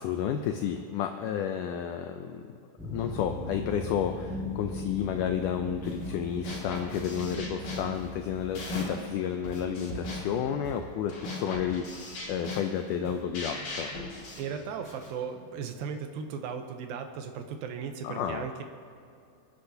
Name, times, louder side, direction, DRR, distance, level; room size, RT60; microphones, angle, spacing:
voice 1, 0.0-2.6 2.9-13.9 18.0-18.5, left 8 dB, 90° left, 6 dB, 1.8 m, -31 dB
sound 1, 2.8-8.8, left 2 dB, 5° right, 0.3 m, -39 dB
sound 2, 5.8-6.2 6.4-9.1 9.4-15.1, left 2 dB, 60° left, 3.9 m, -38 dB
voice 2, 14.4-18.6, right 6 dB, 75° right, 5 dB, 2.6 m, -36 dB
28.5 x 9.8 x 2.8 m, 2.5 s
omnidirectional pair, 4.3 m